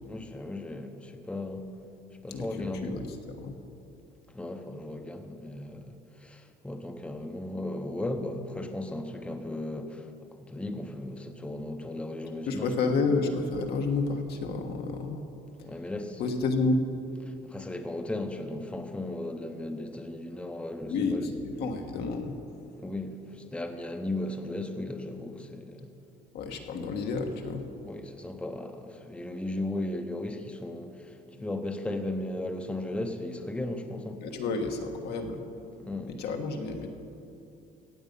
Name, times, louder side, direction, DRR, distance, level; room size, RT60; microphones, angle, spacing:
voice 1, 0.1-1.7 2.2-3.0 4.3-10.1 10.4-12.7 15.6-16.2 17.2-21.3 22.8-25.9 27.8-34.3 35.8-36.2, left 1 dB, 5° left, 0.8 m, -36 dB
voice 2, 2.3-3.0 3.4-3.6 12.5-15.2 15.6-15.7 16.2-16.8 20.9-22.4 26.3-27.6 34.2-35.4 36.1-36.9, left 3 dB, 75° left, 1.4 m, -30 dB
16.0 x 8.1 x 5.4 m
cardioid pair, 110°, 17 cm